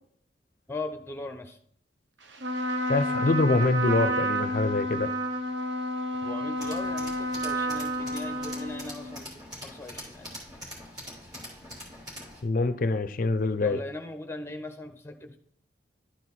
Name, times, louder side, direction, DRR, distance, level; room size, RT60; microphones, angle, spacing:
voice 1, 0.7-1.5 6.2-7.1 7.4-9.3 9.6-10.3 13.6-15.4, left 2 dB, 15° left, 5 dB, 0.8 m, -39 dB
Trumpet, 2.3-9.2, right 1 dB, 85° right, 0.9 m, -30 dB
voice 2, 2.9-5.1 12.4-13.8, left 3 dB, 50° left, 12 dB, 0.5 m, -25 dB
Tools, 6.6-12.4, equal, 20° right, 2.8 m, -43 dB
11.5 x 4.6 x 4.1 m, 0.65 s
head